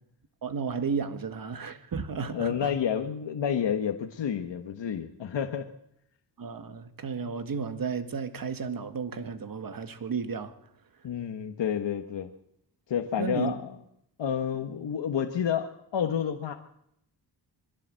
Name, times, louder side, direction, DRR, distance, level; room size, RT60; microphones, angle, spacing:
voice 1, 0.4-2.7 6.4-10.5 13.2-13.5, right 5 dB, 50° right, 2.0 m, -33 dB
voice 2, 2.3-5.7 11.0-12.3 12.9-13.8 14.2-16.5, left 8 dB, 80° left, 1.5 m, -29 dB
23.0 x 15.5 x 7.7 m
wide cardioid pair, 155°, 43 cm